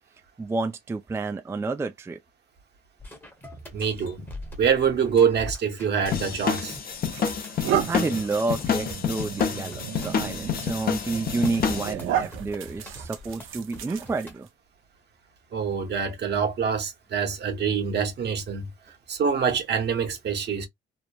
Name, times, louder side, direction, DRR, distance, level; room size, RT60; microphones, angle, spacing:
voice 1, 0.4-2.2 7.4-7.5 7.9-14.5, right 3 dB, 15° right, 0.3 m, -30 dB
sound 1, 3.0-14.4, left 1 dB, 10° left, 0.9 m, -43 dB
voice 2, 3.7-4.2 4.6-6.8 15.5-18.7 19.1-20.7, right 6 dB, 60° right, 1.0 m, -25 dB
sound 2, 6.1-11.9, left 7 dB, 50° left, 0.7 m, -28 dB
sound 3, 6.3-6.5 7.1-14.5, right 10 dB, 85° right, 0.6 m, -33 dB
3.0 x 2.0 x 2.3 m
cardioid pair, 90°, 20 cm